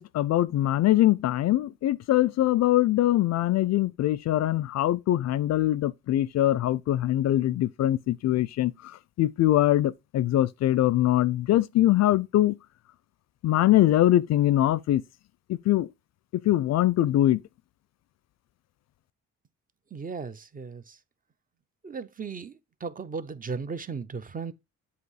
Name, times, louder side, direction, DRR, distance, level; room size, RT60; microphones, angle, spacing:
voice 1, 0.0-12.6 13.4-15.0 15.5-15.9 16.3-17.4, left 14 dB, 60° left, 0.4 m, -23 dB
voice 2, 19.9-21.0 21.8-24.5, right 5 dB, 30° right, 0.6 m, -36 dB
7.9 x 2.8 x 4.8 m
cardioid pair, 90°, 30 cm